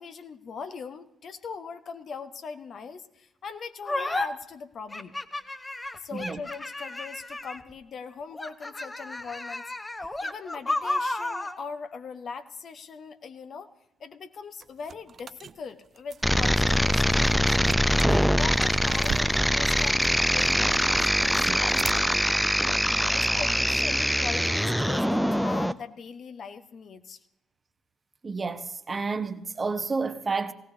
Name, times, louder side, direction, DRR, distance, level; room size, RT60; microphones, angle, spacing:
voice 1, 0.0-5.1 5.9-9.6 10.2-13.7 14.0-17.6 18.1-22.3 22.9-27.2, left 5 dB, 50° left, 1.0 m, -40 dB
sound 1, 3.8-4.3 4.9-7.7 8.3-11.6, left 2 dB, 20° left, 1.0 m, -32 dB
sound 2, 14.6-22.3, right 6 dB, 50° right, 0.4 m, -40 dB
sound 3, 16.2-25.7, equal, ahead, 0.6 m, -23 dB
voice 2, 28.2-30.5, right 4 dB, 35° right, 0.9 m, -30 dB
18.5 x 17.0 x 2.7 m
figure-of-eight pair, 45°, 0 cm